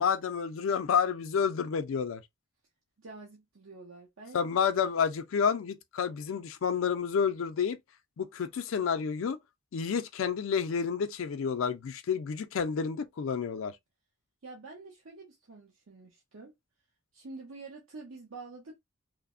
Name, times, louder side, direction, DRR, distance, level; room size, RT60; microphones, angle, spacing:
voice 1, 0.0-2.2 4.3-7.8 8.2-9.4 9.7-13.8, left 6 dB, 80° left, 0.4 m, -29 dB
voice 2, 3.0-4.5 14.4-16.5 17.1-18.8, right 3 dB, 75° right, 0.7 m, -47 dB
3.2 x 2.0 x 2.3 m
head